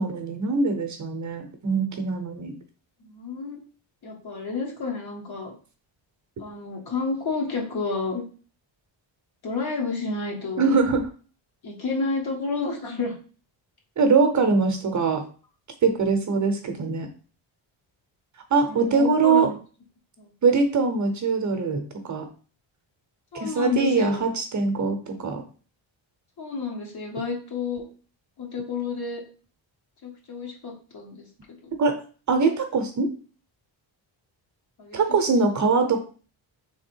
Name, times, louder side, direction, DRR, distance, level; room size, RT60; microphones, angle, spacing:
voice 1, 0.0-2.5 10.6-11.1 14.0-15.2 15.8-17.1 18.5-19.5 20.4-22.3 23.3-25.4 31.8-32.0 32.3-33.1 34.9-36.0, right 4 dB, 40° right, 6 dB, 0.7 m, -22 dB
voice 2, 3.0-3.6 4.0-5.5 6.4-8.2 9.4-10.7 11.6-13.1 18.7-19.6 20.2-20.3 23.3-24.2 26.4-27.8 28.4-29.2 30.0-31.2 31.6-31.7 34.8-35.0, left 4 dB, 55° left, 0 dB, 1.4 m, -30 dB
3.5 x 3.5 x 4.4 m, 0.39 s
wide cardioid pair, 160°, 47 cm